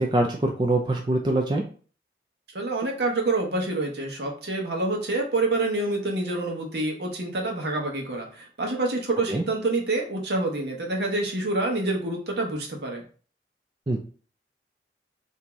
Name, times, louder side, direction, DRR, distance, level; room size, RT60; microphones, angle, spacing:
voice 1, 0.0-1.6 9.3-9.4 13.9-14.0, right 1 dB, 25° right, 2 dB, 0.3 m, -23 dB
voice 2, 2.5-13.0, right 2 dB, 75° right, 1 dB, 0.9 m, -27 dB
3.0 x 2.7 x 3.4 m, 0.41 s
head